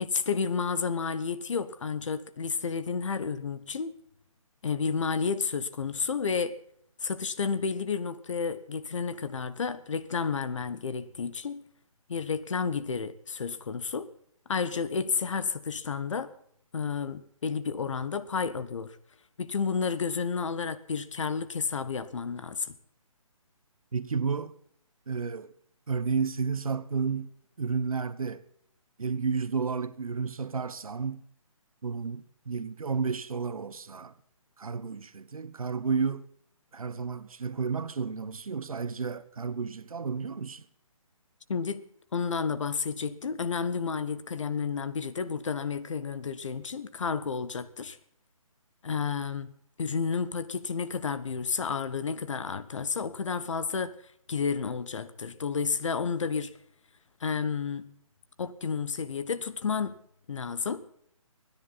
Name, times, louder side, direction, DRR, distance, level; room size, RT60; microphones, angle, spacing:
voice 1, 0.0-3.9 4.6-6.5 7.0-11.6 12.1-14.1 14.5-16.3 16.7-19.0 19.4-22.8 41.5-41.8 42.1-48.0 48.8-49.5 49.8-53.9 54.3-56.5 57.2-57.9 58.4-59.9 60.3-60.8, left 5 dB, 60° left, 1.2 m, -31 dB
voice 2, 23.9-24.6 25.1-25.5 25.9-28.4 29.0-31.2 31.8-34.1 34.6-36.3 36.7-40.7, right 5 dB, 75° right, 1.2 m, -32 dB
30.0 x 10.5 x 4.2 m
hypercardioid pair, 155°, 18 cm